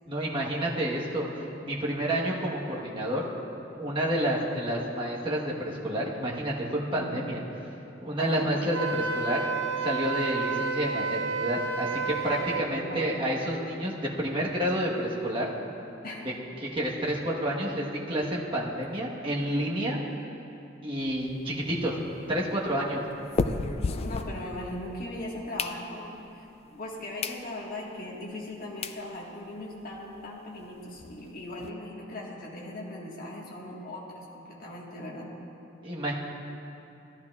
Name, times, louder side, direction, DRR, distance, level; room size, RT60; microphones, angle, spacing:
voice 1, 0.1-3.2 3.8-7.4 8.0-9.4 9.8-15.4 16.2-16.3 16.6-20.0 20.8-21.9 22.3-23.0 35.8-36.1, right 1 dB, 25° right, -4 dB, 1.2 m, -29 dB
voice 2, 6.9-7.2 8.2-8.5 12.8-13.1 16.0-16.3 24.0-35.3, left 1 dB, 50° left, -3 dB, 1.5 m, -39 dB
Wind instrument woodwind instrument, 8.7-12.6, right 4 dB, 65° right, 0.9 m, -30 dB
sound 1, 21.0-24.9 25.3-26.3 26.8-26.9 27.2-27.4 27.9-28.0 28.5-28.6 28.8-29.0 29.5-29.6 29.7-29.9 30.1-30.2 30.5-31.7, left 3 dB, 30° left, 0.3 m, -34 dB
14.5 x 11.5 x 2.4 m, 2.8 s
head